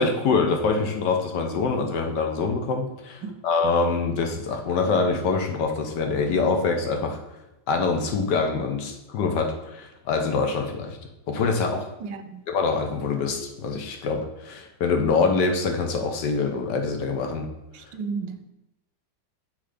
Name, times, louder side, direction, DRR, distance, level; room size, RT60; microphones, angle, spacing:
voice 1, 0.0-7.2 7.7-11.0 11.3-11.9 12.5-17.5, left 4 dB, 75° left, 1.5 m, -25 dB
voice 2, 12.0-12.4 17.7-18.4, right 5 dB, 85° right, 1.3 m, -33 dB
6.9 x 4.0 x 5.0 m
omnidirectional pair, 1.9 m